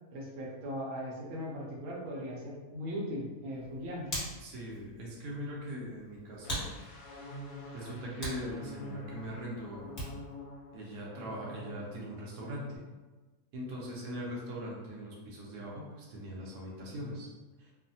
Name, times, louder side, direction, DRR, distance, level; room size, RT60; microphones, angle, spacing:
voice 1, 0.1-4.1, equal, 70° right, -3 dB, 1.1 m, -39 dB
Hands, 3.5-10.4, equal, 25° left, 1.2 m, -44 dB
voice 2, 4.4-6.7 7.7-9.9 10.7-12.8 13.5-17.3 17.6-17.7, equal, 90° right, -4 dB, 1.2 m, -41 dB
sound 1, 6.4-12.2 12.5-12.8, left 1 dB, 80° left, 1.1 m, -47 dB
3.1 x 2.1 x 2.6 m, 1.2 s
omnidirectional pair, 1.7 m